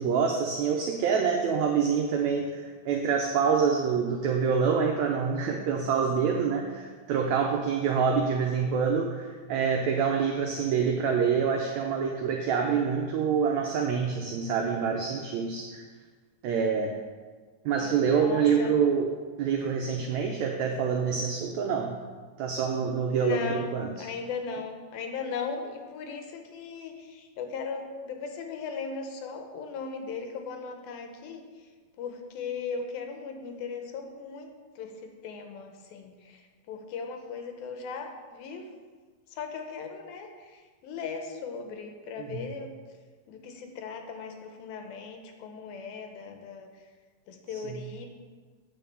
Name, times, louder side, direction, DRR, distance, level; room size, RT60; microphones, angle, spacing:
voice 1, 0.0-15.8 16.4-16.9 17.6-19.1 19.4-22.0 22.4-23.9 42.2-42.4 47.7-47.8, right 6 dB, 90° right, 2 dB, 1.6 m, -26 dB
voice 2, 17.8-18.7 23.2-31.4 32.0-34.5 34.8-38.7 39.3-42.7 43.3-46.7 47.3-48.1, left 5 dB, 85° left, 5 dB, 2.8 m, -38 dB
8.3 x 5.7 x 6.9 m, 1.5 s
omnidirectional pair, 4.2 m